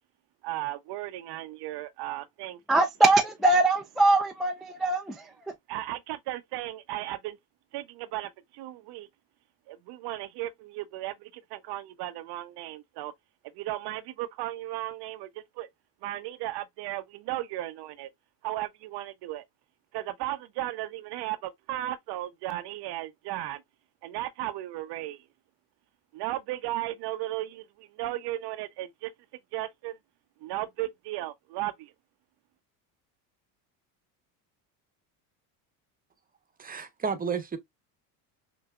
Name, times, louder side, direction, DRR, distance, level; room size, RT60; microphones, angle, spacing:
voice 1, 0.4-2.9 5.7-7.4 7.7-9.1 9.7-13.1 13.5-15.7 16.0-18.1 18.4-19.4 19.9-23.6 24.0-25.2 26.1-29.1 29.5-30.0 30.4-31.9, right 15 dB, 55° right, 0.6 m, -35 dB
voice 2, 2.7-5.3, right 2 dB, ahead, 0.3 m, -22 dB
voice 3, 36.6-37.6, right 6 dB, 20° right, 0.8 m, -31 dB
5.8 x 2.7 x 2.3 m
supercardioid pair, 95°, 49 cm